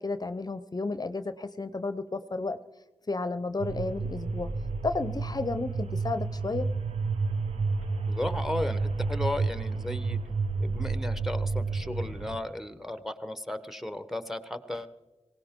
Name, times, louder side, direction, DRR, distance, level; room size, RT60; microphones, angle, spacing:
voice 1, 0.0-2.6 3.1-4.5 4.8-6.7, left 3 dB, 40° left, 12 dB, 0.6 m, -32 dB
sound 1, 3.6-12.4, right 4 dB, 75° right, 1.0 m, -31 dB
voice 2, 8.1-10.2 10.6-14.9, left 1 dB, 5° right, 11 dB, 1.1 m, -35 dB
19.0 x 17.0 x 3.7 m, 1.2 s
cardioid pair, 40°, 11 cm